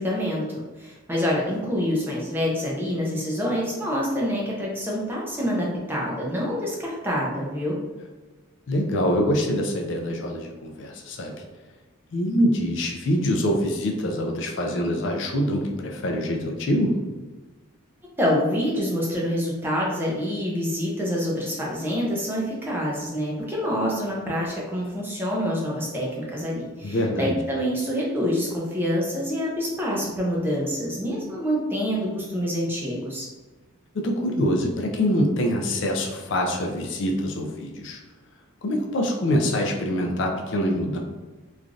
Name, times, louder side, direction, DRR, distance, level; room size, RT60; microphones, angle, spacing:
voice 1, 0.0-7.8 18.2-33.3, equal, 10° right, -4 dB, 0.5 m, -26 dB
voice 2, 8.7-11.3 12.1-17.0 26.8-27.4 33.9-38.0 38.6-41.0, equal, 55° left, 2 dB, 0.4 m, -25 dB
3.1 x 2.4 x 2.4 m, 1.2 s
head